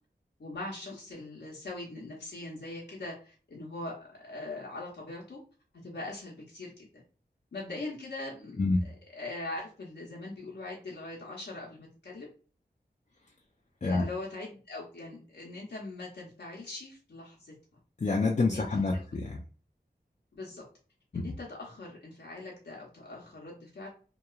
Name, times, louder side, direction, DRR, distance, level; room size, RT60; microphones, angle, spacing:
voice 1, 0.4-5.4 5.8-7.0 7.5-12.3 13.8-17.8 18.5-18.8 20.3-20.6 21.1-23.9, left 2 dB, 85° left, -3 dB, 0.7 m, -41 dB
voice 2, 18.0-19.4 21.1-21.2, left 3 dB, 45° left, -1 dB, 0.4 m, -27 dB
2.9 x 2.3 x 2.3 m, 0.38 s
wide cardioid pair, 65°, 17 cm